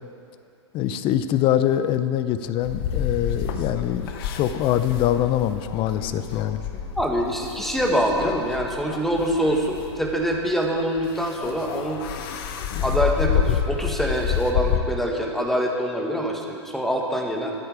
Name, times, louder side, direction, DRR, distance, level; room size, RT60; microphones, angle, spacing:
voice 1, 0.7-4.1 4.3-6.6, left 11 dB, 35° left, 12 dB, 0.8 m, -23 dB
sound 1, 2.6-14.8, left 8 dB, 55° left, 1.1 m, -29 dB
voice 2, 7.0-12.0 12.8-17.5, equal, ahead, 1 dB, 1.9 m, -24 dB
24.0 x 8.1 x 4.8 m, 2.4 s
hypercardioid pair, 110°, 15 cm